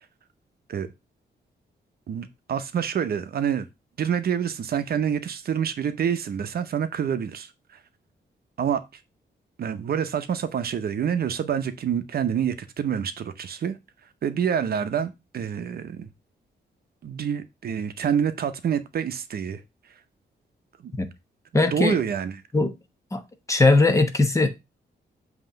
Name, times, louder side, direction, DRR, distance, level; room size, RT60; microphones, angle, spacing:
voice 1, 2.1-3.7 4.0-7.5 8.6-8.8 9.6-13.8 14.2-16.1 17.0-19.6 20.8-20.9 21.6-22.4, right 8 dB, 60° right, 0.7 m, -27 dB
voice 2, 21.5-22.0 22.5-22.7 23.1-23.2 23.5-24.5, left 2 dB, 15° left, 0.9 m, -19 dB
7.8 x 3.0 x 5.0 m
wide cardioid pair, 150°, 18 cm